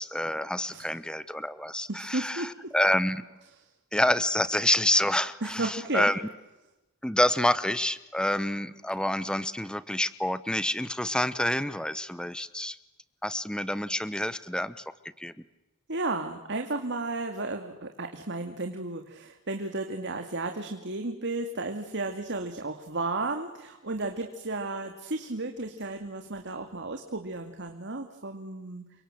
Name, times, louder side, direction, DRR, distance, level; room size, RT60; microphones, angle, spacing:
voice 1, 0.0-3.2 3.9-6.2 7.0-12.8 13.2-14.8 15.2-15.3, left 1 dB, 5° left, 15 dB, 1.0 m, -27 dB
voice 2, 1.9-2.7 5.4-6.1 15.9-28.8, right 2 dB, 55° right, 5 dB, 2.4 m, -33 dB
30.0 x 25.0 x 7.8 m, 1.0 s
head